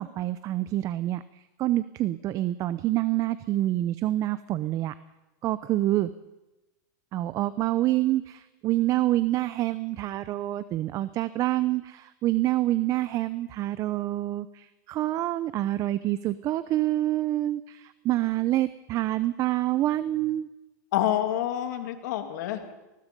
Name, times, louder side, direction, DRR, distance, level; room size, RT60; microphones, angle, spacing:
voice 1, 0.0-4.9 5.4-6.1 7.1-20.5, right 15 dB, 35° right, 15 dB, 0.7 m, -27 dB
voice 2, 20.9-22.7, left 11 dB, 65° left, 7 dB, 2.7 m, -28 dB
24.0 x 20.0 x 5.4 m, 1.0 s
supercardioid pair, 135°, 10 cm